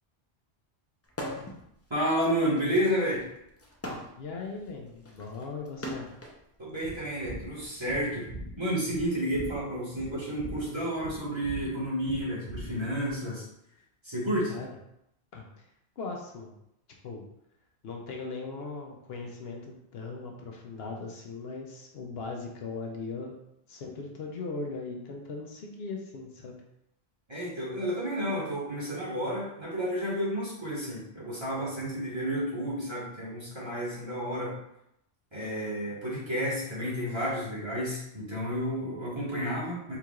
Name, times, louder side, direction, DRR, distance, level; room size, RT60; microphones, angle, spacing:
sound 1, 1.1-1.6 2.0-6.4 7.3-8.9, equal, 20° left, 0.4 m, -41 dB
voice 1, 1.9-3.2 6.6-8.3 8.6-13.4 14.0-14.5 27.3-34.6 35.3-40.0, equal, 25° right, -8 dB, 1.5 m, -31 dB
voice 2, 4.2-6.1 14.5-14.8 15.3-15.6 16.0-16.5 17.0-17.2 17.8-23.3 23.7-26.5, left 4 dB, 70° left, 1 dB, 0.9 m, -39 dB
sound 2, 6.8-13.1, right 1 dB, 75° right, 1.1 m, -42 dB
4.6 x 3.8 x 2.4 m, 0.79 s
omnidirectional pair, 1.1 m